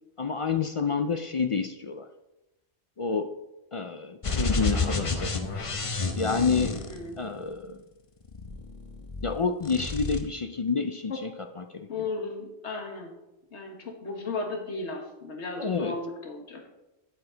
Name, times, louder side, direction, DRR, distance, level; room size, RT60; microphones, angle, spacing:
voice 1, 0.2-2.1 3.0-3.3 3.7-5.3 6.1-6.8 7.2-7.8 9.2-11.3 11.6-11.9 15.6-16.0, left 5 dB, 55° left, 7 dB, 0.3 m, -28 dB
sound 1, 4.2-7.5 8.2-9.3 9.6-10.2, left 3 dB, 35° left, 0.8 m, -30 dB
voice 2, 6.9-7.2 11.1-11.2 11.9-13.1 13.5-16.8, left 3 dB, 85° left, 3 dB, 1.8 m, -35 dB
8.8 x 8.6 x 3.9 m, 0.98 s
omnidirectional pair, 1.1 m